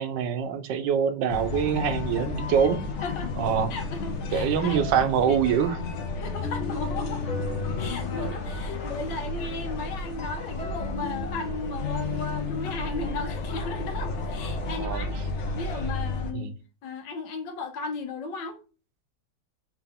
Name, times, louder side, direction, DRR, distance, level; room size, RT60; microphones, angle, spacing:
voice 1, 0.0-2.8 3.4-3.7 4.3-5.8 14.8-15.1 16.3-16.5, right 8 dB, 80° right, 1.3 m, -24 dB
sound 1, 1.3-16.3, left 3 dB, 55° left, 0.9 m, -32 dB
voice 2, 3.0-3.3 3.7-4.8 5.2-5.4 5.9-7.2 7.8-15.1 15.5-16.5 16.8-18.6, left 3 dB, 85° left, 1.6 m, -35 dB
4.9 x 2.9 x 3.5 m
omnidirectional pair, 1.9 m